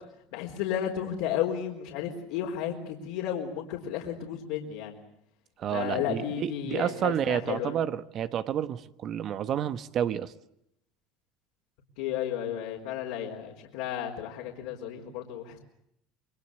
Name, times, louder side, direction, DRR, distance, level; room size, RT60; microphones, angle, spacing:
voice 1, 0.3-4.9 5.7-7.7 12.0-15.6, left 10 dB, 75° left, -1 dB, 4.2 m, -33 dB
voice 2, 5.6-10.3, right 9 dB, 45° right, 13 dB, 1.2 m, -30 dB
28.0 x 21.5 x 8.2 m, 0.77 s
supercardioid pair, 110°, 0 cm